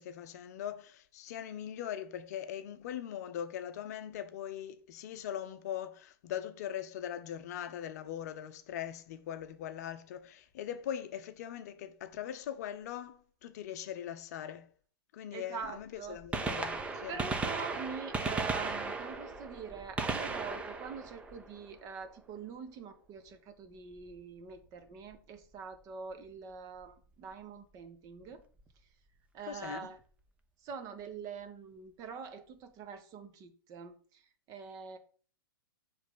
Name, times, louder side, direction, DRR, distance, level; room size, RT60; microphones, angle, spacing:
voice 1, 0.0-14.7 15.1-17.2 29.5-29.9, left 10 dB, 45° left, 0.7 m, -41 dB
voice 2, 15.3-16.2 17.1-28.4 29.3-30.0 30.6-34.2 34.5-35.0, right 6 dB, 30° right, 1.0 m, -44 dB
Gunshot gunfire, 15.6-15.7 16.2-22.0 24.0-24.1 25.1-25.2 26.8-26.9 28.3-28.4 28.6-28.7, right 3 dB, 10° right, 0.7 m, -36 dB
7.3 x 3.4 x 5.5 m
figure-of-eight pair, 110°, 12 cm